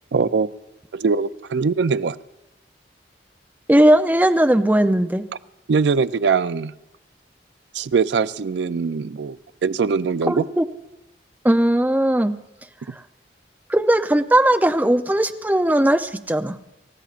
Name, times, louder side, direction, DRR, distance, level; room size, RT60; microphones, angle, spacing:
voice 1, 0.1-0.5 0.9-2.2 5.7-6.7 7.7-9.4 9.6-10.4, right 5 dB, 75° right, 14 dB, 0.4 m, -21 dB
voice 2, 3.7-5.2 10.3-10.6 11.4-12.4 13.7-16.6, right 1 dB, 10° right, 6 dB, 0.5 m, -18 dB
28.0 x 14.5 x 2.5 m, 0.91 s
head